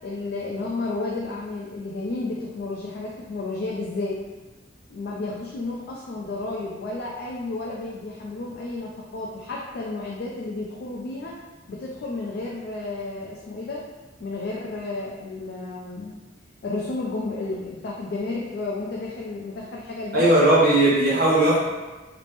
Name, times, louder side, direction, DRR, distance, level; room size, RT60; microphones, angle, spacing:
voice 1, 0.0-4.2 4.9-11.3 11.7-13.8 14.2-16.2 16.6-20.3, left 2 dB, 55° left, -3 dB, 0.3 m, -32 dB
voice 2, 20.1-21.6, right 1 dB, 55° right, -7 dB, 0.8 m, -17 dB
2.9 x 2.0 x 3.2 m, 1.2 s
head